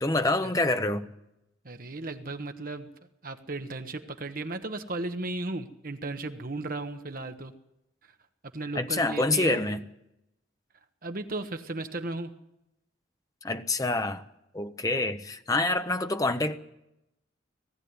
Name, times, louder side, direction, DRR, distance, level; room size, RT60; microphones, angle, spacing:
voice 1, 0.0-1.1 8.7-9.9 13.4-14.2 14.5-16.6, left 2 dB, 20° left, 0.8 m, -27 dB
voice 2, 1.6-2.9 3.2-7.5 8.5-9.6 11.0-12.3, right 2 dB, 45° right, 1.1 m, -35 dB
19.0 x 15.5 x 9.6 m
head